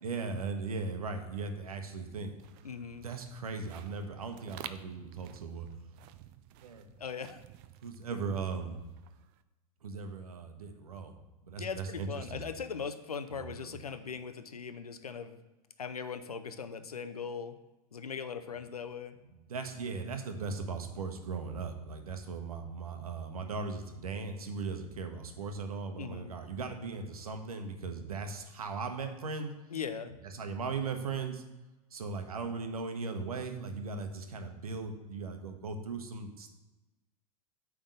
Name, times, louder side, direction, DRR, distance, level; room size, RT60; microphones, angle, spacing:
voice 1, 0.0-2.4 3.0-5.7 6.6-6.9 7.8-8.8 9.8-11.2 11.4-12.4 13.3-13.8 19.3-29.5 30.2-31.4 31.9-36.5, right 4 dB, 75° right, 6 dB, 1.0 m, -38 dB
sound 1, 2.1-9.4, right 12 dB, 45° right, 0.5 m, -52 dB
voice 2, 2.6-3.1 7.0-7.4 11.6-15.4 15.8-17.5 17.9-19.2 26.0-26.3 29.7-30.2, left 6 dB, 85° left, 10 dB, 0.6 m, -39 dB
8.8 x 3.6 x 6.6 m, 1.1 s
figure-of-eight pair, 95°, 19 cm